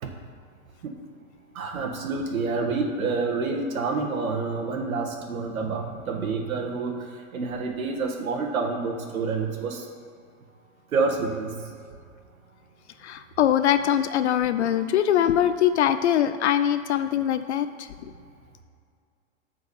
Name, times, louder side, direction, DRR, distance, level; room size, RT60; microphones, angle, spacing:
voice 1, 1.5-7.1 7.3-9.9 10.9-11.5, right 4 dB, 90° right, 3 dB, 1.7 m, -28 dB
voice 2, 13.0-18.1, left 10 dB, 55° left, 11 dB, 0.5 m, -23 dB
8.4 x 4.7 x 7.0 m, 2.2 s
hypercardioid pair, 165°, 40 cm